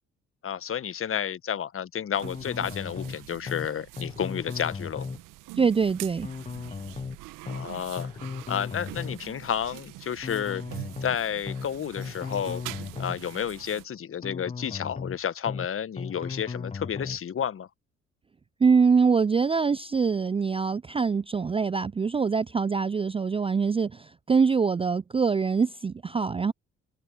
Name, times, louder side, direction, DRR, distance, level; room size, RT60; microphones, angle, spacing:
voice 1, 0.4-5.1 7.4-8.1 8.5-12.6 13.0-17.7, left 8 dB, 35° left, 1.6 m, -31 dB
sound 1, 2.1-13.9, right 20 dB, 60° right, 1.8 m, -44 dB
sound 2, 2.2-3.2 3.5-3.7 4.0-5.2 6.2-7.2 7.5-7.7 8.0-9.2 10.2-11.2 11.5-11.7 12.0-13.2 14.2-15.2 15.5-15.7 16.0-17.2, left 5 dB, 20° left, 0.9 m, -36 dB
voice 2, 5.6-6.3 18.6-26.5, right 5 dB, 15° right, 0.5 m, -24 dB
figure-of-eight pair, 55°, 36 cm